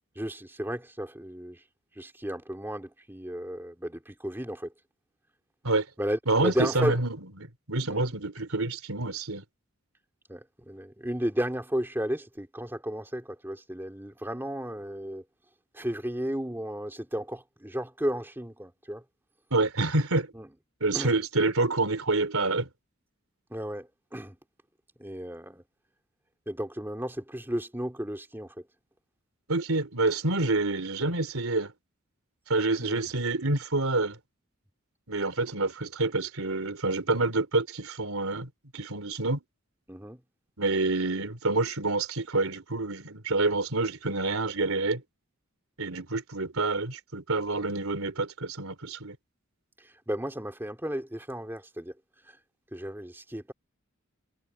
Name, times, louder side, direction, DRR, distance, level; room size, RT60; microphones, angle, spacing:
voice 1, 0.1-1.6 1.9-4.7 6.0-6.9 7.9-8.0 10.3-15.2 15.7-19.0 20.3-20.5 20.9-21.2 23.5-24.4 25.0-25.6 26.5-28.7 32.8-33.0 39.9-40.2 49.8-52.0 52.2-52.4 52.7-53.5, equal, 10° right, 2.5 m, -34 dB
voice 2, 6.3-7.1 7.7-9.4 19.5-20.3 20.8-22.7 29.5-31.7 32.5-34.2 35.1-39.4 40.6-45.0 45.8-49.1, right 2 dB, 90° right, 3.3 m, -27 dB
head